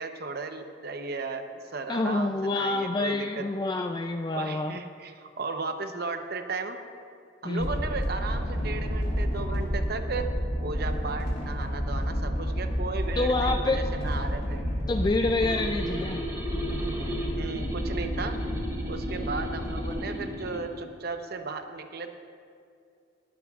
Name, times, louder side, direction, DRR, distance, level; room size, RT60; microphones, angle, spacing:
voice 1, 0.0-1.4 1.7-3.5 4.3-6.8 7.4-10.3 10.6-14.6 17.2-18.4 18.9-22.2, right 4 dB, 55° right, 6 dB, 0.8 m, -35 dB
voice 2, 1.9-4.8 7.4-7.7 13.2-13.8 14.9-16.2, left 2 dB, 25° left, 5 dB, 0.3 m, -27 dB
sound 1, 7.6-20.0, equal, 50° left, 3.0 m, -30 dB
sound 2, 15.4-20.6, equal, 15° right, 1.8 m, -35 dB
19.5 x 12.0 x 2.4 m, 2.3 s
head